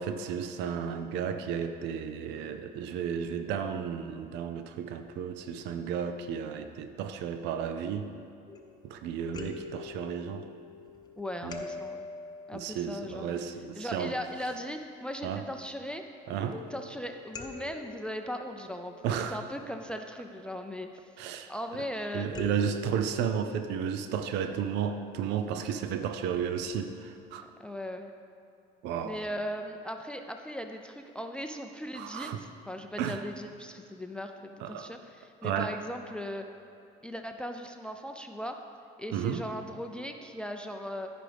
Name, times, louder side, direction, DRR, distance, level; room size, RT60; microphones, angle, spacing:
voice 1, 0.0-8.1 8.8-10.5 11.4-11.6 12.5-14.2 15.2-15.4 16.3-16.6 19.0-19.4 21.2-21.5 22.1-27.5 28.8-29.2 31.9-32.4 33.0-33.2 34.6-34.9 35.4-35.7 39.1-39.4, right 8 dB, 75° right, 9 dB, 0.5 m, -33 dB
sound 1, 8.5-9.0 9.3-14.9 16.5-19.8 22.3-25.6 26.3-26.4 26.8-26.9, left 4 dB, 25° left, 0.8 m, -45 dB
voice 2, 11.2-12.1 12.5-13.4 13.7-16.0 16.3-20.9 21.5-22.3 25.6-25.8 27.6-28.1 29.0-36.5 37.0-38.6 39.0-41.1, equal, 5° left, 5 dB, 0.4 m, -38 dB
14.0 x 5.0 x 3.4 m, 2.4 s
supercardioid pair, 95°, 18 cm